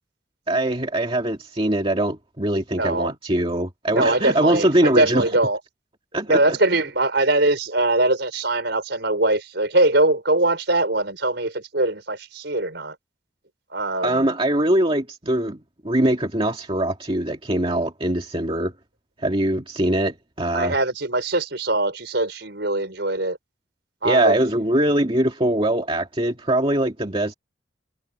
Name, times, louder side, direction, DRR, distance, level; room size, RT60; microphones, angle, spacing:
voice 1, 0.5-5.2 6.1-6.6 14.0-15.6 15.8-18.7 19.2-20.7 24.0-27.3, right 1 dB, 30° right, 2.3 m, -22 dB
voice 2, 2.8-3.1 3.9-5.6 6.3-13.0 13.7-14.3 20.5-23.4 24.0-24.6, right 2 dB, 60° right, 5.8 m, -22 dB
head